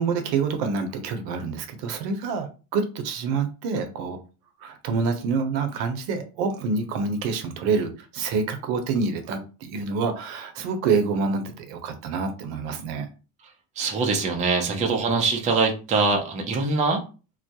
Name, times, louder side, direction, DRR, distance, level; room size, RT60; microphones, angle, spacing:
voice 1, 0.0-4.2 4.6-13.1 14.7-14.9, right 4 dB, 75° right, 6 dB, 0.7 m, -27 dB
voice 2, 13.8-17.0, right 4 dB, 20° right, 2 dB, 0.4 m, -23 dB
2.2 x 2.0 x 2.7 m, 0.33 s
supercardioid pair, 110°, 45 cm